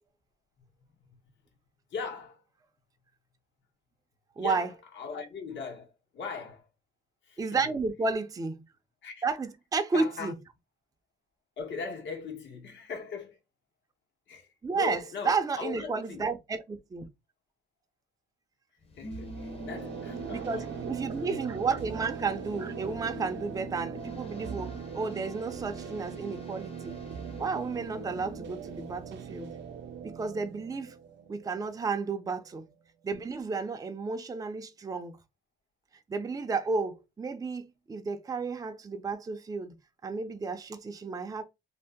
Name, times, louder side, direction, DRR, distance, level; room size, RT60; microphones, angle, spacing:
voice 1, 1.9-2.4 4.4-6.7 7.2-7.8 9.0-9.2 9.9-10.3 11.6-13.4 14.3-16.3 18.9-20.7 21.2-21.4, left 5 dB, 70° left, 1.3 m, -39 dB
voice 2, 4.4-4.7 7.4-8.6 9.2-10.3 14.6-15.0 15.3-17.1 20.3-27.0 27.4-29.5 30.0-30.9 31.3-32.6 33.0-35.2 36.1-39.8 40.0-41.4, right 4 dB, 20° right, 0.4 m, -32 dB
sound 1, 18.8-29.3, left 2 dB, 30° left, 0.8 m, -46 dB
sound 2, 19.1-32.8, right 7 dB, 65° right, 0.5 m, -41 dB
2.7 x 2.1 x 3.5 m
cardioid pair, 90°, 20 cm